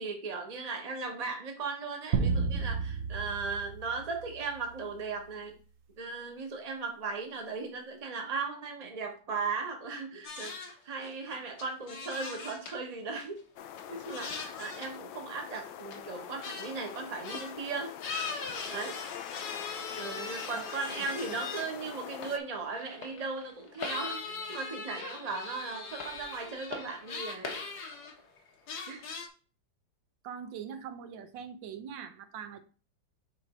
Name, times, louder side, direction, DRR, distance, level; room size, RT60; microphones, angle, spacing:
voice 1, 0.0-5.5 6.0-13.4 13.9-18.0 18.7-19.0 19.9-27.6 28.9-29.0, right 4 dB, 25° right, 3 dB, 1.0 m, -37 dB
sound 1, 2.1-4.7, right 5 dB, 60° right, 0.9 m, -32 dB
sound 2, 10.2-10.7 11.0-11.3 11.6-12.8 13.2-13.3 13.8-15.0 15.3-15.5 15.9-16.0 16.4-16.7 17.2-17.5 18.0-21.9 22.2-28.4 28.7-29.3, left 4 dB, 60° left, 1.5 m, -40 dB
sound 3, 13.6-22.4, left 10 dB, 85° left, 1.3 m, -44 dB
voice 2, 21.0-21.4 30.2-32.6, right 7 dB, 80° right, 9 dB, 1.4 m, -42 dB
6.9 x 3.3 x 4.9 m, 0.38 s
omnidirectional pair, 2.0 m